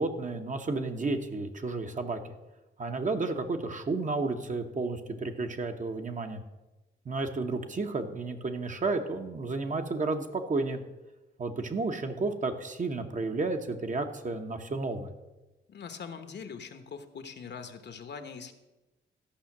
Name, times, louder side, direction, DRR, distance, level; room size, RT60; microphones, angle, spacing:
voice 1, 0.0-2.3 2.8-6.4 7.0-10.8 11.4-15.1, right 3 dB, 40° right, 6 dB, 1.0 m, -32 dB
voice 2, 15.7-18.5, left 6 dB, 55° left, 8 dB, 1.1 m, -42 dB
13.5 x 5.7 x 7.2 m, 1.1 s
wide cardioid pair, 130°, 21 cm